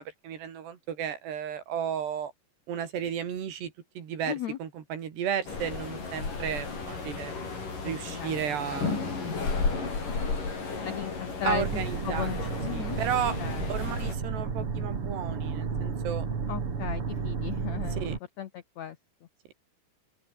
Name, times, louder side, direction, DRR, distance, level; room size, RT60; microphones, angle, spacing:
voice 1, 0.0-2.3 2.7-7.3 7.8-9.1 9.7-10.2 11.5-12.3 12.7-13.4 13.7-16.3 18.0-18.2, right 8 dB, 85° right, 5.2 m, -34 dB
voice 2, 4.3-4.6 7.8-8.6 10.8-13.0 13.4-13.8 16.5-19.0, left 10 dB, 75° left, 1.6 m, -36 dB
sound 1, 5.5-14.1, left 4 dB, 50° left, 8.1 m, -33 dB
sound 2, 11.5-18.2, right 5 dB, 35° right, 3.6 m, -32 dB
open air
omnidirectional pair, 4.7 m